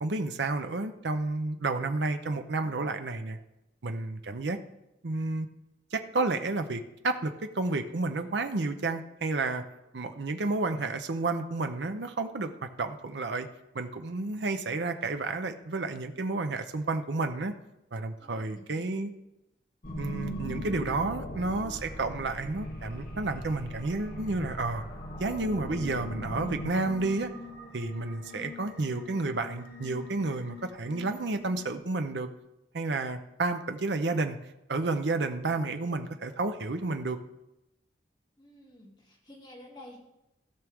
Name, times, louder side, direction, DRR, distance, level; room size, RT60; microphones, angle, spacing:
voice 1, 0.0-3.4 3.8-4.6 5.0-5.5 5.9-9.6 9.9-12.5 12.8-13.5 13.7-17.5 17.9-19.1 19.9-24.8 25.2-27.3 27.7-32.3 32.7-34.4 34.7-37.2, right 3 dB, 75° right, 7 dB, 0.7 m, -31 dB
voice 2, 18.2-19.1 38.4-40.0, left 1 dB, 25° left, -4 dB, 2.5 m, -51 dB
sound 1, 19.8-31.7, equal, 50° left, 1.4 m, -40 dB
16.0 x 6.1 x 3.6 m, 0.90 s
head